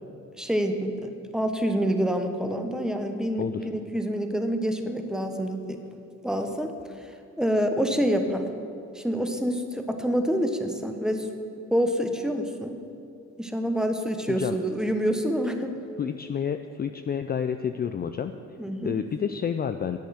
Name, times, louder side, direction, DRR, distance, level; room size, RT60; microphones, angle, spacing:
voice 1, 0.4-5.8 6.2-6.7 7.4-8.4 8.9-11.3 11.7-12.8 13.4-15.8 18.6-19.0, equal, ahead, 5 dB, 1.0 m, -27 dB
voice 2, 16.0-18.3 18.8-20.0, left 7 dB, 30° left, 8 dB, 0.4 m, -29 dB
10.5 x 8.3 x 6.5 m, 2.5 s
cardioid pair, 90°, 30 cm